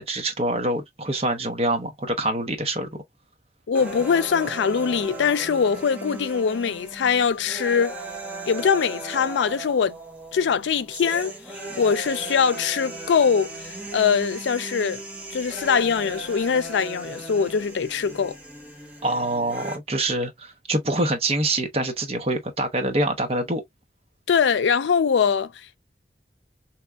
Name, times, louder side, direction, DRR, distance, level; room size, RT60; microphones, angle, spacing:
voice 1, 0.0-2.9 19.0-23.6, right 1 dB, 35° right, 0.8 m, -25 dB
voice 2, 3.7-7.9 8.5-9.9 10.3-11.3 11.8-15.0 15.3-18.4 24.3-25.5, left 6 dB, 85° left, 0.4 m, -22 dB
sound 1, 3.8-19.8, right 2 dB, 10° right, 0.8 m, -37 dB
3.5 x 3.0 x 2.2 m
head